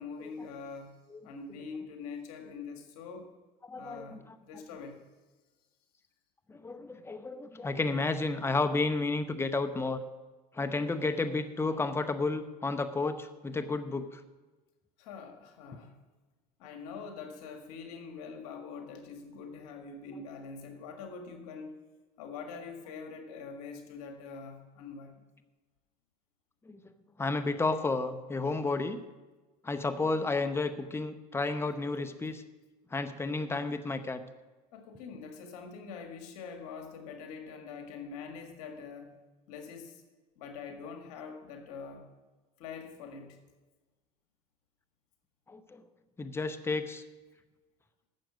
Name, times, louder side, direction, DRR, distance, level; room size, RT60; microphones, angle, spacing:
voice 1, 0.0-0.9 1.2-3.3 3.7-5.0 15.0-16.0 16.6-21.8 22.2-25.2 34.7-39.2 39.5-40.0 40.4-42.1 42.6-43.4, left 5 dB, 85° left, 4 dB, 1.8 m, -44 dB
voice 2, 3.6-4.2 6.5-10.0 10.5-14.2 26.7-26.8 27.2-29.0 29.6-32.4 32.9-34.2 45.5-45.8 46.2-47.0, left 3 dB, 15° left, 10 dB, 0.9 m, -32 dB
12.0 x 7.6 x 6.3 m, 1.2 s
supercardioid pair, 105°, 20 cm